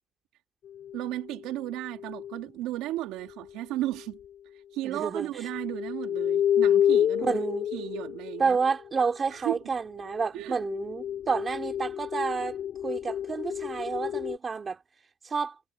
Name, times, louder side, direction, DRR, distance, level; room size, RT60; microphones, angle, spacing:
sound 1, 0.7-2.4 4.0-4.1 5.4-9.1 10.0-14.4, left 10 dB, 55° left, 3.9 m, -29 dB
voice 1, 0.9-4.2 4.7-7.4 7.7-8.6 9.3-9.6 10.3-10.6, right 15 dB, 80° right, 2.4 m, -34 dB
voice 2, 4.8-5.3 7.2-7.7 8.4-12.6 12.8-14.8 15.2-15.5, right 5 dB, 30° right, 3.5 m, -29 dB
cardioid pair, 115°, 0 cm